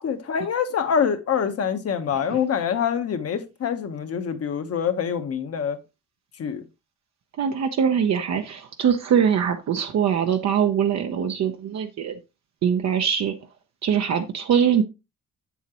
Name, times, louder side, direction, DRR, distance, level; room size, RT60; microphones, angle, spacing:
voice 1, 0.0-5.8 6.4-6.6, left 7 dB, 50° left, 1.1 m, -25 dB
voice 2, 7.4-12.1 12.6-13.3 13.8-14.8, right 8 dB, 60° right, 0.8 m, -22 dB
7.2 x 7.2 x 2.9 m
cardioid pair, 135°, 30 cm